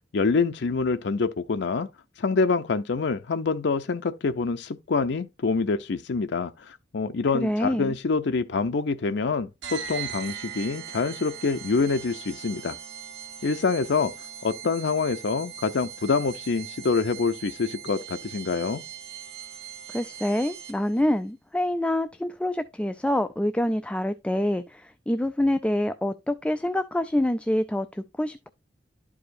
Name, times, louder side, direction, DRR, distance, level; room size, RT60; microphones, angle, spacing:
voice 1, 0.1-1.9 2.2-12.8 13.4-14.1 14.4-18.8, left 4 dB, 70° left, 0.5 m, -26 dB
voice 2, 7.3-8.0 19.9-28.5, left 1 dB, 5° left, 0.3 m, -26 dB
sound 1, 9.6-21.0, right 8 dB, 75° right, 1.5 m, -40 dB
12.0 x 4.8 x 2.6 m
head